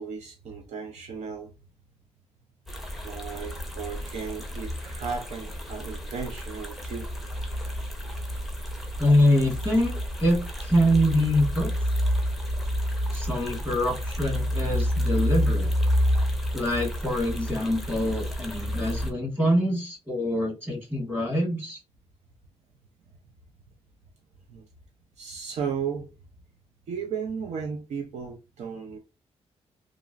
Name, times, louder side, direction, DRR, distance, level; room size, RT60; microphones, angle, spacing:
voice 1, 0.0-1.5 3.0-7.1 24.5-24.6 25.2-26.1 26.9-29.0, right 6 dB, 75° right, 0.5 m, -35 dB
sound 1, 2.7-19.1, equal, ahead, 0.5 m, -29 dB
voice 2, 9.0-9.9 10.2-11.7 13.1-15.7 16.5-21.8, equal, 20° right, 1.4 m, -24 dB
2.9 x 2.4 x 2.4 m
wide cardioid pair, 140°, 12 cm